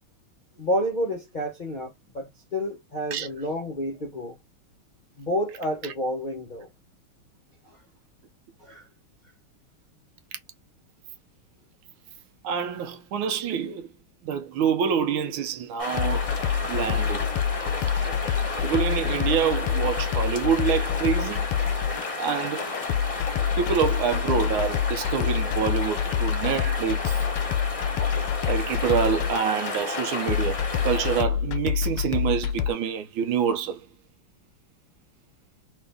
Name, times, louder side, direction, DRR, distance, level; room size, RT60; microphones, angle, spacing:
voice 1, 0.6-4.4 5.2-6.7 7.7-7.8 8.6-8.8, equal, 60° left, 0.4 m, -30 dB
voice 2, 12.4-13.9 14.2-16.3 16.7-17.3 18.6-21.4 22.2-22.6 23.6-27.2 28.5-33.8, right 7 dB, 80° right, 1.5 m, -26 dB
sound 1, 15.8-31.2, left 2 dB, 25° left, 0.7 m, -33 dB
sound 2, 15.9-32.7, left 8 dB, 90° left, 1.4 m, -27 dB
3.5 x 2.7 x 3.5 m
omnidirectional pair, 2.3 m